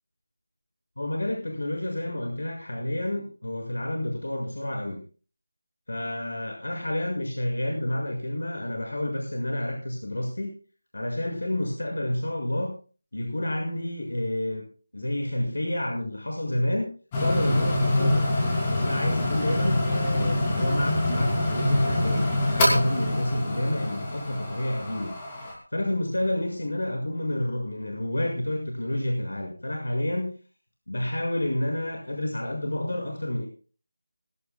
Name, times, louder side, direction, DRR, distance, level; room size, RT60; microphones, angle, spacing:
voice 1, 1.0-5.0 5.9-10.5 10.9-12.7 13.1-14.6 14.9-16.9 17.2-18.3 18.8-25.1 25.7-30.3 30.9-33.5, left 1 dB, 85° left, 2 dB, 6.6 m, -29 dB
sound 1, 17.1-25.5, left 1 dB, 10° left, 2.9 m, -25 dB
20.0 x 18.0 x 2.4 m, 0.38 s
figure-of-eight pair, 180°, 0 cm